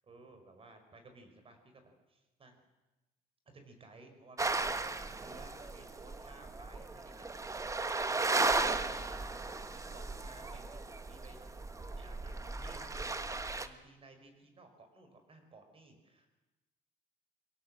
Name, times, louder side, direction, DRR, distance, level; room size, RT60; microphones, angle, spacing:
voice 1, 0.1-2.6 3.5-11.6 12.0-16.3, right 2 dB, 35° right, 6 dB, 5.2 m, -57 dB
sound 1, 4.4-13.7, right 3 dB, 20° right, 1.3 m, -36 dB
24.0 x 17.0 x 7.7 m, 1.1 s
cardioid pair, 110°, 17 cm